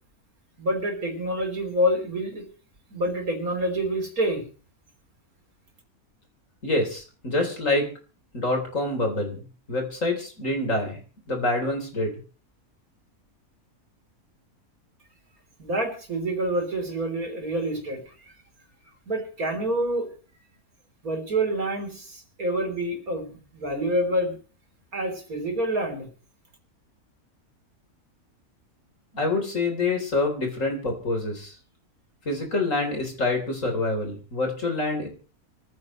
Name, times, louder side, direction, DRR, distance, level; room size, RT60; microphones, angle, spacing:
voice 1, 0.6-2.4 2.9-4.4 15.6-18.3 19.1-20.1 21.0-24.4 24.9-26.1, right 1 dB, 75° right, 4 dB, 4.2 m, -27 dB
voice 2, 6.6-7.9 8.3-11.0 11.3-12.1 29.1-31.6 32.3-35.1, left 2 dB, 60° left, 2 dB, 4.2 m, -26 dB
24.0 x 15.0 x 3.2 m, 0.37 s
omnidirectional pair, 1.5 m